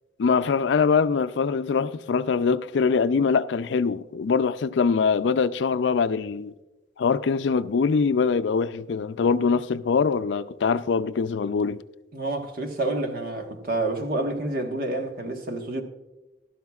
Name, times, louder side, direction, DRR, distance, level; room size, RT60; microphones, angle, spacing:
voice 1, 0.2-6.5 7.0-11.8, left 5 dB, 75° left, 0.4 m, -23 dB
voice 2, 12.1-15.8, right 2 dB, 50° right, 1.3 m, -28 dB
15.0 x 12.5 x 2.4 m
head